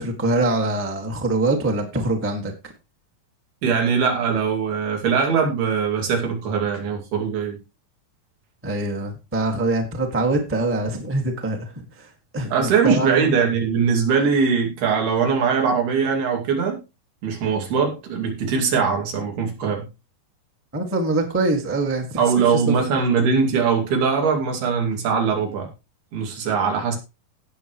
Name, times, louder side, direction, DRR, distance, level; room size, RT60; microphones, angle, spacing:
voice 1, 0.0-2.5 8.6-11.7 12.0-12.1 12.3-13.3 20.7-22.2 22.5-22.7, right 2 dB, 15° right, 0.4 m, -24 dB
voice 2, 3.6-7.6 12.5-16.8 17.2-19.9 22.2-25.7 26.1-27.0, right 6 dB, 80° right, 4.5 m, -21 dB
17.0 x 6.8 x 3.1 m
omnidirectional pair, 4.4 m